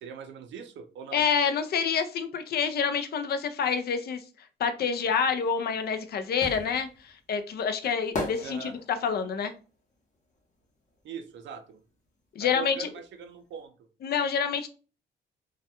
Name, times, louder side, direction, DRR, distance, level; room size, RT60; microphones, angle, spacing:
voice 1, 0.0-1.3 8.4-8.7 11.0-11.8 12.4-13.8, right 7 dB, 65° right, 7 dB, 0.5 m, -41 dB
voice 2, 1.1-4.2 4.6-9.5 12.4-12.9 14.0-14.7, left 6 dB, 55° left, 8 dB, 0.4 m, -27 dB
sound 1, 5.5-11.4 11.7-13.3 13.5-13.6, left 2 dB, 35° left, 0.8 m, -38 dB
2.2 x 2.1 x 2.8 m, 0.36 s
cardioid pair, 90°, 20 cm